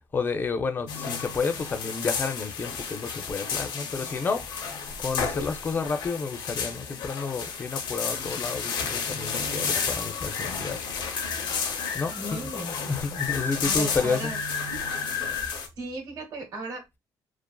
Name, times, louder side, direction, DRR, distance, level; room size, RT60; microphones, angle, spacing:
voice 1, 0.1-4.4 5.0-10.8 11.5-11.6 11.9-12.4 12.9-14.3, left 4 dB, 25° left, 0.4 m, -30 dB
sound 1, 0.9-15.7, left 6 dB, 75° left, 0.6 m, -32 dB
voice 2, 12.1-12.8 13.6-14.4 15.8-17.0, right 2 dB, 55° right, 1.0 m, -36 dB
2.5 x 2.4 x 2.2 m
cardioid pair, 140°, 8 cm